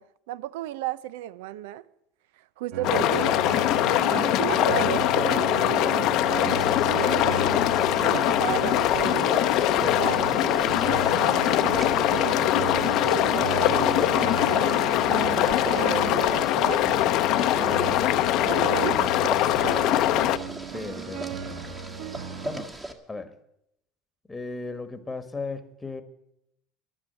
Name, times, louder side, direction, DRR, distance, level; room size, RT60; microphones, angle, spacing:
voice 1, 0.0-1.9 2.4-3.5 4.0-7.4 7.9-14.7 15.2-19.7, right 13 dB, 85° right, 0.6 m, -34 dB
sound 1, 2.7-22.7, right 6 dB, 70° right, 0.9 m, -35 dB
sound 2, 2.8-20.4, left 14 dB, 60° left, 0.7 m, -23 dB
Boiling, 6.3-22.9, right 1 dB, 15° right, 1.5 m, -40 dB
voice 2, 20.7-21.8 22.4-22.7 23.1-23.3 24.3-26.0, left 3 dB, 10° left, 1.3 m, -36 dB
11.5 x 9.8 x 9.0 m
supercardioid pair, 125°, 0 cm